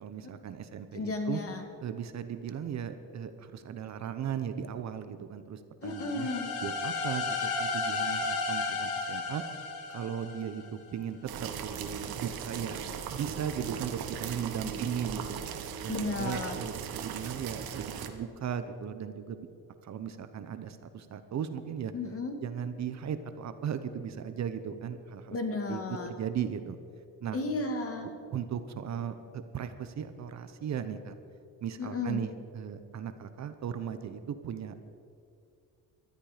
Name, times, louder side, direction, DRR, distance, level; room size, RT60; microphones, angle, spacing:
voice 1, 0.0-1.4 1.8-6.3 6.6-9.4 9.9-12.8 13.1-15.4 15.8-19.5 19.8-21.9 22.4-25.4 25.7-26.8 27.2-27.4 28.3-31.1 31.6-34.8, right 8 dB, 45° right, 10 dB, 0.9 m, -37 dB
voice 2, 0.9-1.6 5.8-6.5 14.6-14.7 15.9-16.6 21.9-22.4 25.3-26.1 27.3-28.1 31.8-32.2, left 3 dB, 40° left, 5 dB, 2.0 m, -33 dB
sound 1, 5.8-10.7, left 4 dB, 85° left, 2.2 m, -33 dB
sound 2, 11.3-18.1, right 8 dB, 70° right, 1.4 m, -38 dB
19.5 x 13.0 x 5.1 m, 2.3 s
cardioid pair, 130°, 37 cm